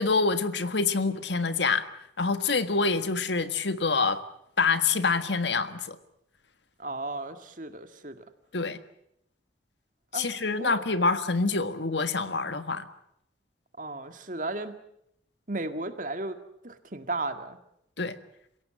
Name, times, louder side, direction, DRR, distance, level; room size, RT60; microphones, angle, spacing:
voice 1, 0.0-1.8 2.2-4.2 4.6-6.0 8.5-8.8 10.1-12.8 18.0-18.1, left 4 dB, 75° left, 10 dB, 1.6 m, -26 dB
voice 2, 6.8-8.2 10.1-10.3 10.6-10.8 13.8-14.7 15.5-16.4 16.6-17.6, right 2 dB, 45° right, 8 dB, 1.9 m, -34 dB
28.5 x 17.0 x 8.9 m, 0.76 s
head